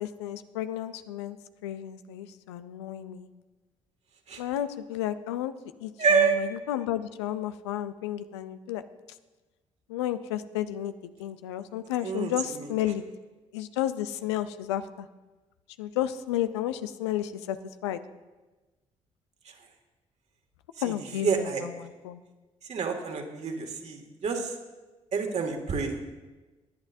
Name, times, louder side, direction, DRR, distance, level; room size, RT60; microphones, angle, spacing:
voice 1, 0.0-1.4 1.6-3.3 4.4-5.5 5.8-8.9 9.9-13.0 13.5-15.1 15.8-17.6 17.8-18.0 20.8-22.2, left 12 dB, 85° left, 12 dB, 0.5 m, -32 dB
voice 2, 6.0-6.4 12.0-12.7 20.9-21.0 21.2-21.7 22.7-24.5 25.1-26.0, right 5 dB, 55° right, 3 dB, 2.1 m, -27 dB
19.5 x 9.9 x 2.7 m, 1.2 s
hypercardioid pair, 50°, 14 cm